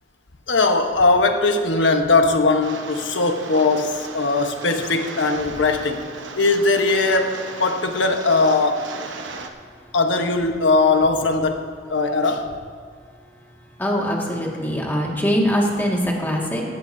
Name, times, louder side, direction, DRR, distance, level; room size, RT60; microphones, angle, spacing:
voice 1, 0.5-6.1 6.3-8.8 9.9-12.5, left 3 dB, 75° left, 5 dB, 1.1 m, -20 dB
Rain, 2.6-9.5, right 3 dB, 85° right, 1.0 m, -36 dB
voice 2, 13.8-16.6, equal, 10° left, -2 dB, 1.9 m, -22 dB
16.0 x 15.0 x 2.7 m, 2.2 s
head